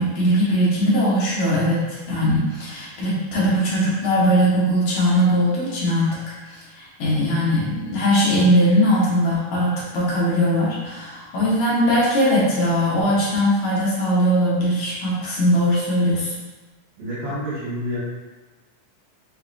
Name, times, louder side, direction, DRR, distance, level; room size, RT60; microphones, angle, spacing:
voice 1, 0.0-6.2 6.5-16.3, equal, 70° left, -7 dB, 2.3 m, -20 dB
voice 2, 17.0-18.0, equal, 65° right, -10 dB, 2.7 m, -28 dB
5.9 x 2.7 x 2.4 m, 1.2 s
omnidirectional pair, 3.8 m